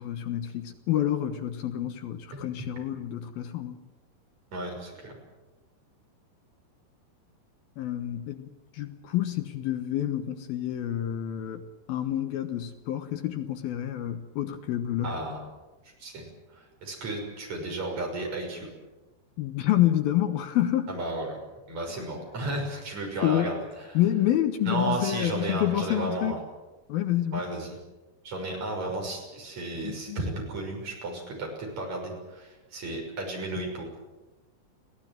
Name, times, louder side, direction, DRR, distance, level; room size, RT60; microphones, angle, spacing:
voice 1, 0.0-3.8 7.8-8.5 8.7-15.1 19.4-21.0 23.2-23.6 23.9-26.3 26.9-27.5 29.8-30.2, left 12 dB, 70° left, 8 dB, 2.9 m, -28 dB
voice 2, 4.5-5.2 15.0-15.4 16.0-16.3 16.5-18.7 20.9-21.4 21.7-24.0 24.7-26.4 27.3-27.8 28.2-33.9, right 2 dB, 40° right, 1 dB, 7.3 m, -33 dB
24.0 x 17.0 x 9.2 m, 1.1 s
omnidirectional pair, 4.8 m